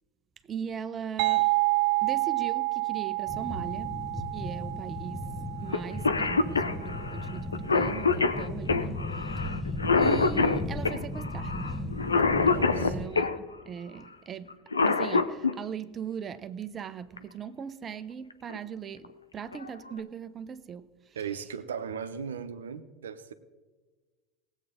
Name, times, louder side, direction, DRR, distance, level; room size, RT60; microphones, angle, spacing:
voice 1, 0.5-1.5 2.0-5.3 5.6-11.9 12.4-14.6 14.9-21.2, right 7 dB, 30° right, 0.7 m, -39 dB
sound 1, 1.2-6.7, right 24 dB, 55° right, 0.3 m, -29 dB
sound 2, 3.3-13.1, left 1 dB, 10° left, 1.3 m, -36 dB
Cough, 5.7-5.8 6.0-13.4 14.5-15.5 17.2-17.3 18.3-18.6 19.0-19.1 19.5-20.0, left 4 dB, 85° left, 0.6 m, -26 dB
voice 2, 12.5-13.1 21.1-23.3, right 7 dB, 75° right, 0.8 m, -37 dB
19.0 x 8.2 x 3.7 m
figure-of-eight pair, 75°, 0 cm